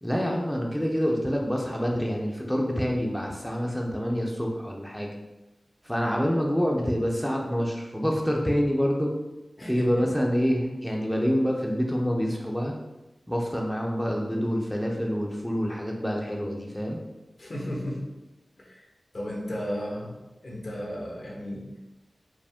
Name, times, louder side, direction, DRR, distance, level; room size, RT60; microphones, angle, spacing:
voice 1, 0.0-5.1 5.8-9.1 9.6-12.7 13.3-17.0, equal, 5° left, 0 dB, 0.6 m, -27 dB
voice 2, 17.4-18.0 18.6-18.8 19.1-20.1 20.4-21.7, equal, 65° left, -2 dB, 1.1 m, -34 dB
4.9 x 2.0 x 3.5 m, 1.0 s
cardioid pair, 40°, 0 cm